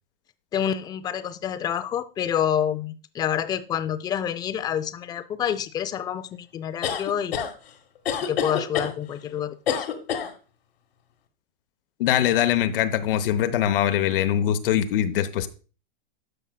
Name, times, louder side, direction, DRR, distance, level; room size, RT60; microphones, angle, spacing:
voice 1, 0.5-7.4 8.3-9.6, left 9 dB, 15° left, 0.3 m, -28 dB
sound 1, 6.8-7.5 8.0-8.9 9.7-10.3, left 8 dB, 85° left, 1.5 m, -26 dB
voice 2, 12.0-15.5, left 11 dB, 65° left, 0.8 m, -22 dB
13.0 x 5.4 x 2.2 m
hypercardioid pair, 120°, 30 cm